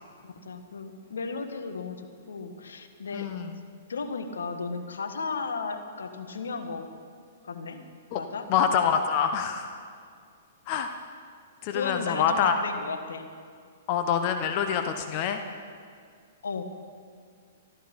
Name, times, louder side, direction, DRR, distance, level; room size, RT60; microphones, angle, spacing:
voice 1, 0.2-3.3 3.9-6.9 7.4-7.8 8.2-8.5 11.7-13.3 16.4-16.6, left 4 dB, 85° left, 7 dB, 1.5 m, -35 dB
voice 2, 3.1-3.6 8.1-8.2 8.5-9.8 10.7-10.9 11.6-12.6 13.9-15.4, left 7 dB, 45° left, 6 dB, 1.0 m, -26 dB
16.0 x 12.5 x 5.3 m, 2.1 s
hypercardioid pair, 130°, 0 cm